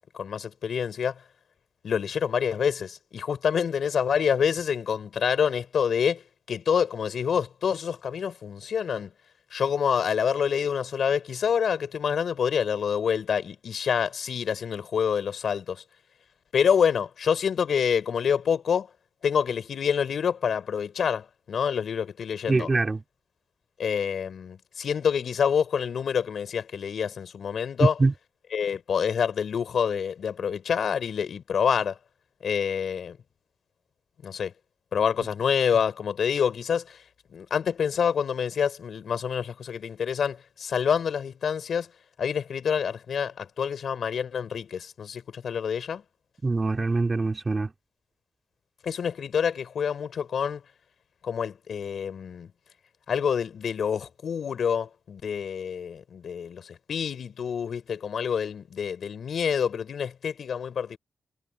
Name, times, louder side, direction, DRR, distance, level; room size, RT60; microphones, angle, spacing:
voice 1, 0.1-1.2 1.8-6.2 6.5-9.1 9.5-15.8 16.5-18.9 19.2-22.7 23.8-27.9 28.5-32.0 32.4-33.2 34.2-34.5 34.9-37.0 37.3-41.9 42.2-46.0 48.8-50.6 51.2-52.5 53.1-61.0, left 7 dB, 75° left, 4.7 m, -27 dB
voice 2, 22.5-23.0 27.8-28.1 46.4-47.7, right 3 dB, 30° right, 3.5 m, -23 dB
cardioid pair, 90°, 0 cm